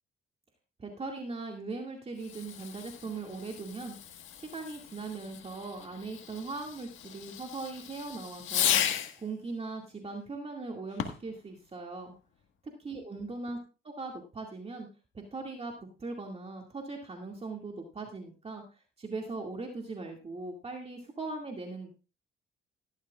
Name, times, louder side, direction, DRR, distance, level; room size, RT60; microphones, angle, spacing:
voice 1, 0.8-12.1 12.8-13.6 13.8-14.9 15.3-15.7 16.0-21.9, right 3 dB, 30° right, 1 dB, 2.2 m, -40 dB
Fireworks, 2.2-9.3 10.9-11.4, left 10 dB, 80° left, 1.6 m, -35 dB
16.0 x 12.5 x 2.4 m, 0.33 s
cardioid pair, 90°, 20 cm